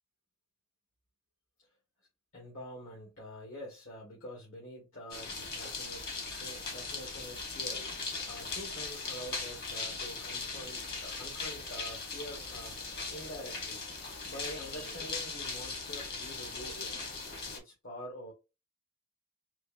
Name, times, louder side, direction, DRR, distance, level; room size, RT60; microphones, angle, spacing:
voice 1, 2.3-6.1 6.4-12.8 13.1-13.8 14.2-16.9 17.5-18.3, equal, 70° left, 1.7 m, -46 dB
sound 1, 5.1-17.6, left 4 dB, 50° left, 1.3 m, -39 dB
4.4 x 2.6 x 2.3 m
head